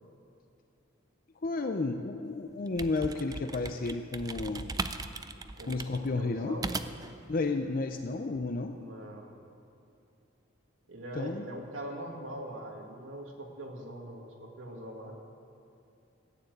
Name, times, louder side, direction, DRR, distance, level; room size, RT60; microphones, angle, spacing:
voice 1, 1.4-4.7 5.7-6.6 7.3-8.7 11.1-11.4, left 3 dB, 45° left, 6 dB, 0.5 m, -32 dB
sound 1, 2.5-7.2, right 3 dB, 20° right, 0.4 m, -38 dB
voice 2, 5.5-6.7 8.7-9.4 10.9-15.1, right 1 dB, 75° right, 0 dB, 2.2 m, -42 dB
14.5 x 9.3 x 8.0 m, 2.6 s
head